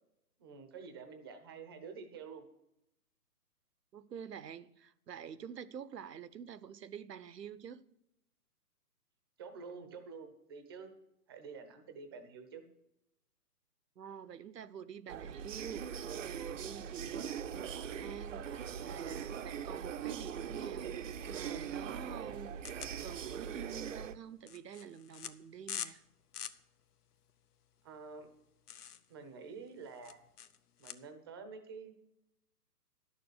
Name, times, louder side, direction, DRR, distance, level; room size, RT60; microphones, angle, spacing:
voice 1, 0.4-2.4 9.4-10.9 11.3-12.6 27.8-28.3 29.1-30.2 30.8-32.0, right 5 dB, 15° right, 0.6 m, -48 dB
voice 2, 3.9-7.8 14.0-26.0, right 8 dB, 85° right, 0.9 m, -48 dB
sound 1, 15.1-24.2, right 8 dB, 50° right, 0.6 m, -41 dB
sound 2, 22.6-30.9, left 9 dB, 70° left, 1.0 m, -47 dB
10.5 x 6.8 x 8.1 m
hypercardioid pair, 150°, 48 cm